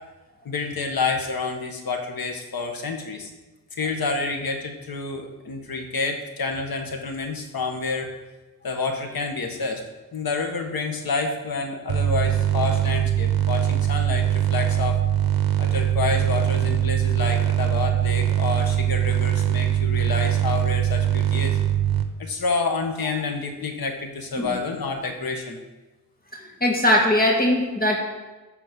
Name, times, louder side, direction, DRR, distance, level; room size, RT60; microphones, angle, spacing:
voice 1, 0.4-3.3 3.7-8.1 8.6-9.8 10.1-15.0 15.6-21.6 22.2-25.6, left 4 dB, 65° left, 4 dB, 1.6 m, -28 dB
sound 1, 11.9-22.0, right 11 dB, 70° right, 1.0 m, -22 dB
voice 2, 26.6-28.0, left 1 dB, 25° left, 0 dB, 2.1 m, -20 dB
13.0 x 4.5 x 7.5 m, 1.2 s
wide cardioid pair, 135°, 38 cm